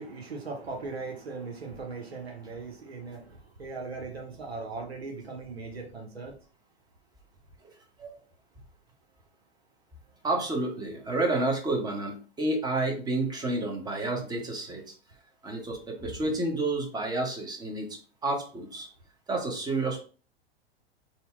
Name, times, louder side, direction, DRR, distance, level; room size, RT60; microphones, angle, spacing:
voice 1, 0.0-6.3, right 4 dB, 90° right, 0.7 m, -39 dB
voice 2, 10.2-14.8 15.4-18.9 19.3-20.0, right 2 dB, 15° right, 0.8 m, -30 dB
2.7 x 2.0 x 3.5 m
figure-of-eight pair, 100°, 31 cm